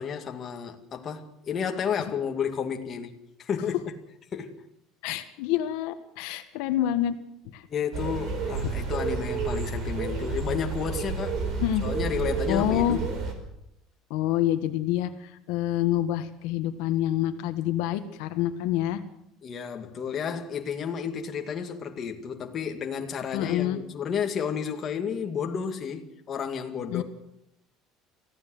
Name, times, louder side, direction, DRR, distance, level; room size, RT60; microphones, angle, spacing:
voice 1, 0.0-3.1 3.4-4.0 4.3-4.6 7.7-11.4 11.8-13.1 19.4-27.0, left 7 dB, 30° left, 2.1 m, -32 dB
voice 2, 5.0-7.1 7.5-7.6 11.6-11.8 12.5-13.0 14.1-15.1 15.5-19.0 23.3-23.8 26.9-27.0, left 12 dB, 75° left, 1.7 m, -27 dB
sound 1, 7.9-13.3, right 5 dB, 40° right, 5.0 m, -30 dB
24.5 x 15.5 x 7.9 m
cardioid pair, 170°, 0 cm